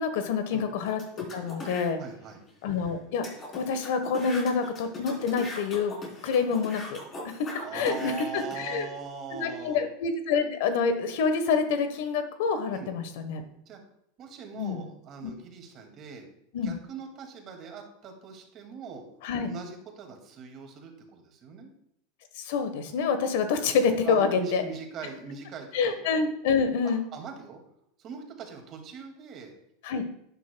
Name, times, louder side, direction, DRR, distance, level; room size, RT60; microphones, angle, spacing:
voice 1, 0.0-2.0 2.6-3.3 3.5-5.9 6.2-7.0 7.7-8.9 9.3-13.4 14.6-14.8 15.2-15.3 16.5-16.8 19.2-19.5 22.3-24.6 25.7-27.1 29.8-30.0, left 5 dB, 70° left, 9 dB, 1.1 m, -27 dB
sound 1, 0.8-1.9 2.5-2.6 2.8-2.9 3.2-8.6, left 2 dB, 30° left, 3.5 m, -40 dB
voice 2, 2.0-2.4 7.6-9.8 12.7-12.9 13.7-13.8 14.2-16.3 16.6-19.0 19.4-21.7 24.0-26.0 27.1-27.6 28.0-29.5, right 6 dB, 40° right, 3 dB, 2.1 m, -41 dB
11.0 x 9.2 x 2.2 m, 0.73 s
supercardioid pair, 125°, 0 cm